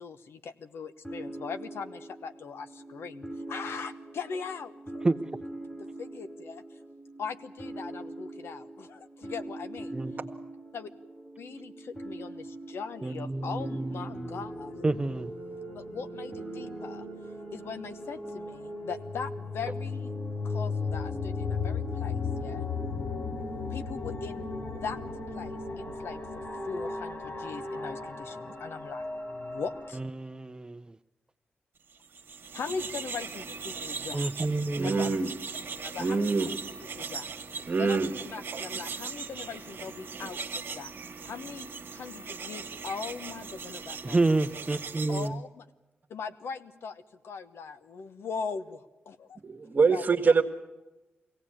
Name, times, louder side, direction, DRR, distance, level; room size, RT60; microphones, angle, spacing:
voice 1, 0.0-5.1 5.8-6.6 7.2-10.0 10.7-10.9 11.4-14.8 15.7-17.1 17.5-20.1 20.4-22.7 23.7-25.0 25.3-30.0 32.5-34.3 34.8-35.1 35.8-36.3 36.9-38.0 38.2-40.9 41.2-44.2 45.1-45.6 46.1-49.4 49.9-50.3, left 5 dB, 85° left, 11 dB, 1.1 m, -40 dB
sound 1, 1.0-18.5, right 2 dB, 10° left, 1.1 m, -43 dB
voice 2, 13.0-14.3 14.8-15.3 30.0-30.8 34.1-34.9 44.0-45.3, right 2 dB, 20° right, 12 dB, 0.7 m, -29 dB
sound 2, 13.9-29.9, left 3 dB, 50° left, 4.3 m, -36 dB
sound 3, 32.0-45.3, right 5 dB, 60° right, 1.4 m, -39 dB
voice 3, 34.8-35.3 36.0-36.5 37.7-38.1 49.4-50.4, right 4 dB, 45° right, 6 dB, 1.6 m, -24 dB
23.0 x 17.0 x 8.8 m, 1.1 s
wide cardioid pair, 105°, 4 cm